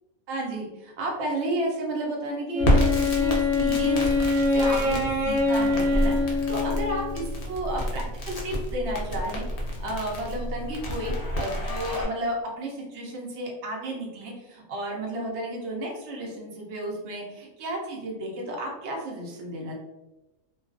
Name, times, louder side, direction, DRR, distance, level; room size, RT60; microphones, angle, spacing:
voice 1, 0.3-19.7, right 1 dB, 65° right, -1 dB, 0.9 m, -32 dB
Wind instrument woodwind instrument, 2.5-7.3, left 3 dB, 80° right, 1.2 m, -24 dB
Crackle, 2.6-12.0, equal, 70° left, 0.3 m, -29 dB
2.4 x 2.3 x 2.4 m, 1.0 s
omnidirectional pair, 1.3 m